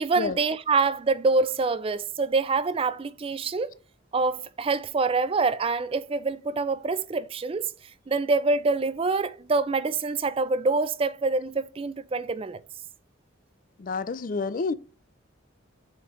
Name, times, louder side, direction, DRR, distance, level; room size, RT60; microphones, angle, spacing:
voice 1, 0.0-3.7 4.1-7.7 8.1-12.6, right 3 dB, 25° right, 0.3 m, -26 dB
voice 2, 13.8-14.7, left 4 dB, 40° left, 0.4 m, -29 dB
5.2 x 4.4 x 4.2 m
head